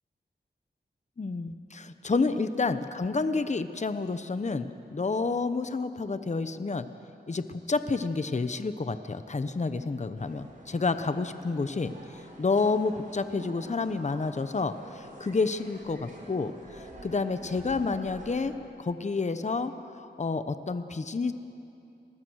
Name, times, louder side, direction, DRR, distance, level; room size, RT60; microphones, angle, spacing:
voice 1, 1.2-6.9 7.3-21.3, left 4 dB, 40° left, 10 dB, 1.0 m, -30 dB
sound 1, 10.2-18.5, equal, 45° right, 5.3 m, -48 dB
30.0 x 20.5 x 6.4 m, 2.8 s
cardioid pair, 60°, 19 cm